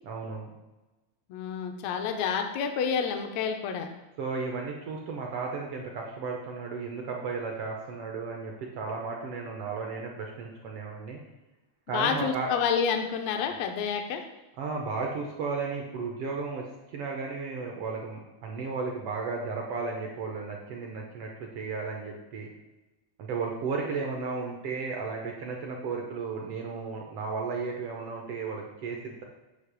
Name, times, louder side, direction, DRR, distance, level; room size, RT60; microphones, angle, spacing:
voice 1, 0.0-0.5 4.2-11.2 11.9-12.5 14.6-22.5 23.2-29.2, right 4 dB, 70° right, 0 dB, 1.4 m, -34 dB
voice 2, 1.3-3.9 11.9-14.2, left 6 dB, 75° left, 5 dB, 1.7 m, -29 dB
8.1 x 2.9 x 6.0 m, 1.1 s
omnidirectional pair, 3.4 m